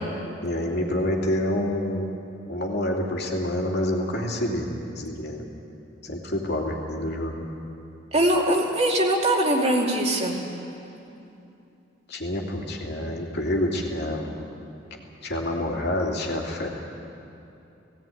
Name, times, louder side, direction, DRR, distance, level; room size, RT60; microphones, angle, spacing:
voice 1, 0.4-2.0 2.5-4.7 4.9-5.4 6.0-7.4 12.1-14.3 15.2-16.7, left 1 dB, 60° left, 0 dB, 2.8 m, -27 dB
voice 2, 8.1-10.4, right 1 dB, 35° right, -1 dB, 2.6 m, -22 dB
18.0 x 17.0 x 9.2 m, 2.8 s
head